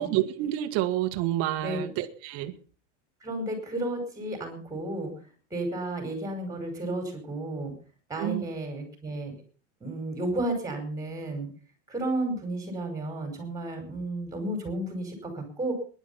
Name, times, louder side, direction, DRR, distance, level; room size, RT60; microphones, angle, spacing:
voice 1, 0.0-2.5 8.2-8.4, right 13 dB, 40° right, 7 dB, 1.6 m, -28 dB
voice 2, 3.2-5.1 5.5-7.7 8.1-9.3 9.8-11.5 11.9-15.7, right 1 dB, 10° right, 5 dB, 5.2 m, -32 dB
20.0 x 11.0 x 5.7 m, 0.43 s
supercardioid pair, 165°, 37 cm